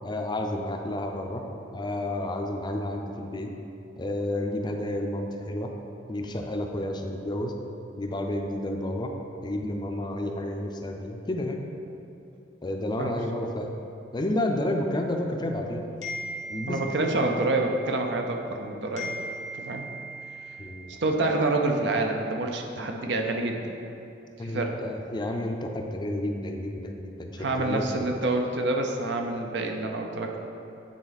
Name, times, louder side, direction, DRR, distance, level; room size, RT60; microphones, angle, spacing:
voice 1, 0.0-1.4 1.7-3.5 4.0-5.7 6.1-7.5 8.0-9.1 9.4-11.6 12.6-13.7 14.1-15.9 16.5-17.3 20.6-21.0 24.4-28.1, left 1 dB, 25° left, 3 dB, 0.5 m, -31 dB
sound 1, 16.0-18.6 19.0-21.5, right 1 dB, 90° left, 1.4 m, -39 dB
voice 2, 16.7-19.1 19.5-19.9 20.9-23.7 24.4-24.8 27.4-30.4, right 2 dB, 70° right, 3 dB, 0.7 m, -27 dB
9.4 x 4.1 x 4.1 m, 2.8 s
head